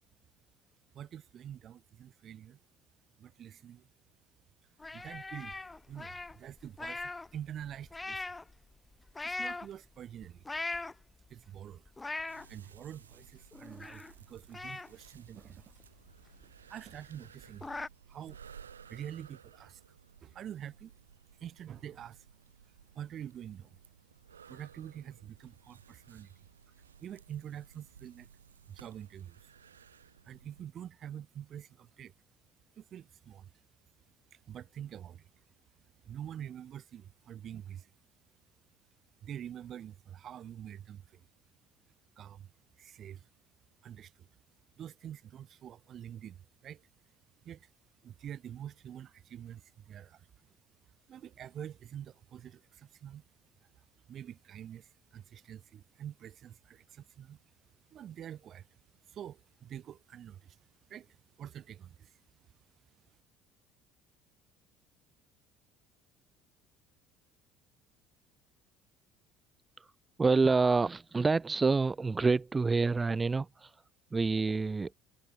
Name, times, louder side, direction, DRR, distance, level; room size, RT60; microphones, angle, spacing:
voice 1, 0.9-2.6 3.2-3.9 4.9-5.6 5.9-8.3 9.2-10.5 11.3-11.8 12.2-15.8 16.7-17.7 18.1-18.4 18.9-20.0 20.2-20.9 21.4-22.3 22.9-23.8 24.5-26.3 27.0-28.3 28.7-29.5 30.2-32.1 32.8-33.5 34.3-35.3 36.0-37.9 39.2-41.3 42.2-42.5 42.8-43.3 43.8-44.3 44.8-46.9 47.4-47.7 48.0-50.6 51.1-53.2 53.6-57.4 57.9-58.8 59.1-60.6 60.9-62.2, right 10 dB, 50° right, 6.0 m, -46 dB
sound 1, 4.8-7.3 7.6-8.5 9.1-9.7 10.2-11.2 11.7-12.5 12.9-13.0 13.3-14.2 14.5-16.1 16.4-16.5 16.9-17.0 17.2-17.9, left 3 dB, 15° left, 4.7 m, -40 dB
sound 2, 12.3-30.7, right 7 dB, 85° right, 6.6 m, -57 dB
voice 2, 70.2-73.8 74.1-74.9, right 4 dB, 25° right, 1.4 m, -27 dB
hypercardioid pair, 60°, 0 cm